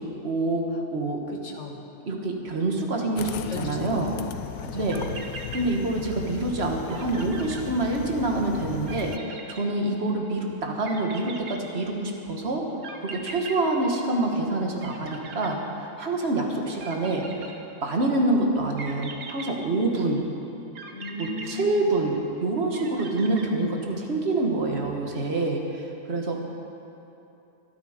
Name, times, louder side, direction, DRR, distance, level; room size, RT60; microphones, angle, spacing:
voice 1, 0.0-1.2 2.1-4.1 4.7-5.0 5.5-12.6 13.0-17.2 17.8-20.2 21.2-22.1 22.4-26.4, right 2 dB, 45° right, 1 dB, 1.7 m, -26 dB
voice 2, 1.3-1.8 3.4-4.2 4.6-5.2 5.5-5.7 20.9-22.1, left 3 dB, 50° left, 2 dB, 1.7 m, -37 dB
sound 1, 3.2-9.2, left 11 dB, 70° left, 1.0 m, -37 dB
sound 2, 4.6-4.7 4.9-6.3 6.6-6.7 6.9-8.3 8.9-10.3 10.8-12.2 12.8-14.5 14.8-16.2 16.8-18.0 18.8-20.2 20.8-22.3 22.7-24.0, right 4 dB, 65° right, 1.6 m, -41 dB
24.0 x 8.5 x 5.1 m, 2.9 s
omnidirectional pair, 1.6 m